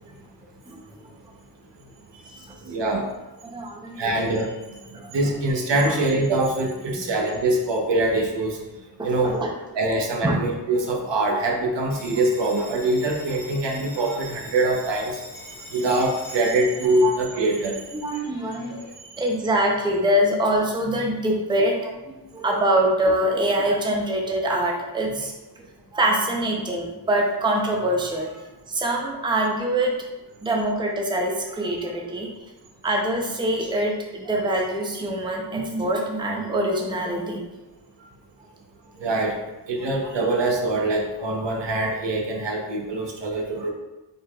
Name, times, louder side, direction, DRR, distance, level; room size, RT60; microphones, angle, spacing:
voice 1, 2.7-3.1 4.0-4.8 5.1-8.6 9.0-9.3 9.7-15.1 15.7-17.8 34.3-34.4 39.0-39.4 39.7-43.7, right 2 dB, 75° right, 0 dB, 0.9 m, -23 dB
voice 2, 3.5-4.1 4.9-5.1 5.8-6.0 9.0-9.5 10.2-10.4 17.0-17.1 17.9-18.7 19.2-25.4 25.9-29.9 30.4-32.3 32.8-37.4 39.0-39.1, right 1 dB, 10° right, 0 dB, 0.6 m, -24 dB
Bell, 11.9-18.9, left 1 dB, 45° left, 1.4 m, -42 dB
5.5 x 3.7 x 2.3 m, 1.0 s
wide cardioid pair, 120°, 43 cm